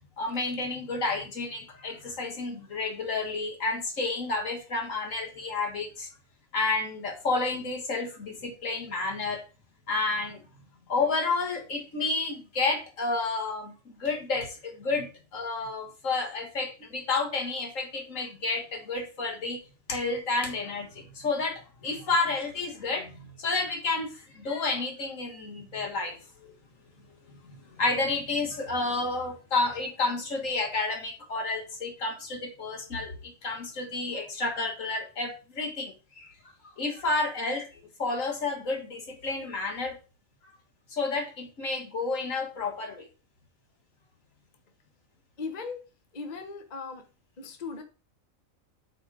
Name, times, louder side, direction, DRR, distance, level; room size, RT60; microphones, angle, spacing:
voice 1, 0.2-6.1 6.5-9.4 9.9-10.4 10.9-19.6 19.9-26.5 27.5-36.3 36.8-40.0 40.9-43.1, left 3 dB, 70° left, 2 dB, 2.0 m, -30 dB
voice 2, 45.4-45.8 46.1-47.0 47.4-47.8, left 4 dB, 35° left, 5 dB, 1.0 m, -37 dB
8.1 x 4.0 x 4.9 m, 0.33 s
omnidirectional pair, 1.4 m